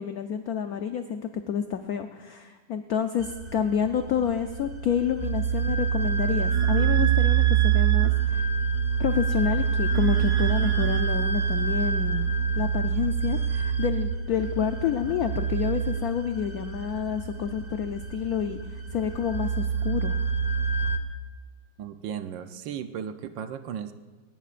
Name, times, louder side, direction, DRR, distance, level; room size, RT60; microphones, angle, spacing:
voice 1, 0.0-8.5 9.0-18.6 18.9-20.2, left 8 dB, 75° left, 7 dB, 0.8 m, -29 dB
sound 1, 3.2-21.0, right 7 dB, 55° right, 0.4 m, -26 dB
voice 2, 21.8-23.9, right 8 dB, 70° right, 9 dB, 1.3 m, -35 dB
21.5 x 18.5 x 2.5 m, 1.3 s
omnidirectional pair, 2.2 m